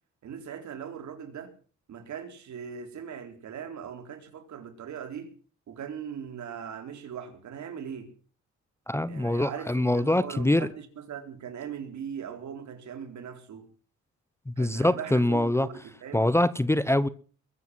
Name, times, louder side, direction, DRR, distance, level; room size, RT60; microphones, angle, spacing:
voice 1, 0.2-1.5 1.9-5.3 5.7-8.1 9.1-13.7 14.6-16.3, right 8 dB, 70° right, 3.9 m, -40 dB
voice 2, 8.9-10.7 14.5-15.7 16.1-17.1, left 1 dB, 10° left, 0.8 m, -24 dB
22.0 x 8.0 x 7.9 m
cardioid pair, 90°, 30 cm